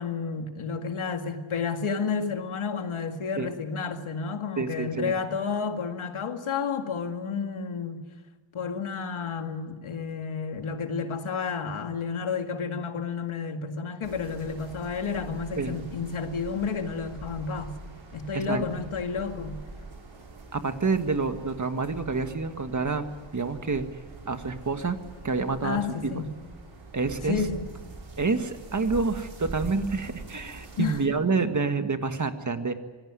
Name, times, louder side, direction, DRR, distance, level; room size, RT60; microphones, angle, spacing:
voice 1, 0.0-8.1 8.5-17.8 18.1-19.6 25.6-26.3 27.3-27.7 30.8-31.0, left 5 dB, 80° left, 6 dB, 2.2 m, -31 dB
voice 2, 4.6-5.1 15.6-15.7 18.3-18.6 20.5-23.0 23.3-23.8 24.2-25.0 25.2-26.2 26.9-27.4 28.2-32.7, right 4 dB, 35° right, 7 dB, 1.7 m, -28 dB
sound 1, 14.0-31.0, right 3 dB, 65° right, 5.5 m, -44 dB
25.5 x 17.5 x 9.6 m, 1.4 s
wide cardioid pair, 125°, 49 cm